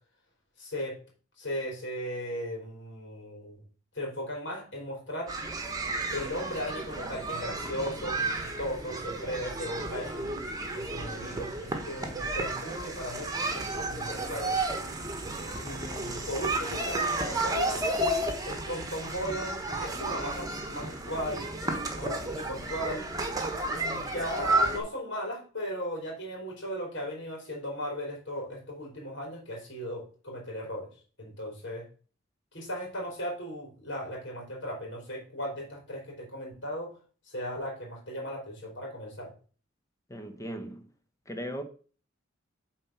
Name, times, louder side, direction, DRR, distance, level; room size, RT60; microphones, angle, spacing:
voice 1, 0.6-1.0 1.4-3.6 3.9-5.3 6.1-10.3 10.7-14.5 15.6-17.8 18.4-21.5 21.9-23.1 23.7-30.9 31.2-31.9 32.5-36.9 37.3-39.3, equal, 60° left, 3.6 m, -37 dB
sound 1, 5.3-24.8, right 2 dB, 20° right, 1.3 m, -32 dB
voice 2, 40.1-40.8 41.3-41.6, equal, 15° left, 0.9 m, -37 dB
7.6 x 4.2 x 5.9 m
head